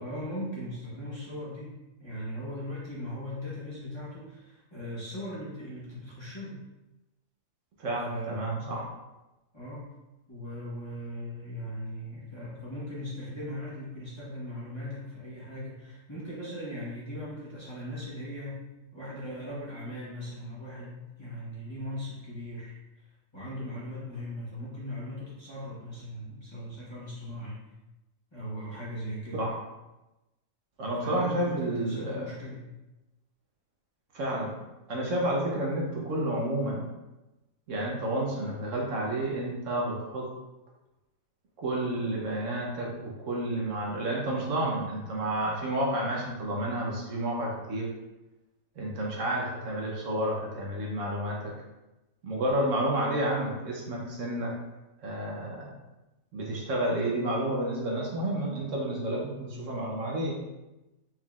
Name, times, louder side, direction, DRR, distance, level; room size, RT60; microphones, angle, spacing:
voice 1, 0.0-6.6 7.9-8.8 9.5-9.9 10.3-18.7 18.9-22.7 23.3-27.6 28.3-29.5 31.0-32.6 59.4-59.9, equal, 20° left, -8 dB, 1.1 m, -39 dB
voice 2, 7.8-8.9 29.4-29.5 30.8-32.3 34.1-34.5 34.9-36.9 37.7-40.3 41.6-47.9 48.8-51.5 52.2-54.5 55.0-55.7 56.3-60.4, right 1 dB, 65° right, -2 dB, 1.1 m, -30 dB
4.6 x 3.6 x 2.4 m, 1.0 s
omnidirectional pair, 1.4 m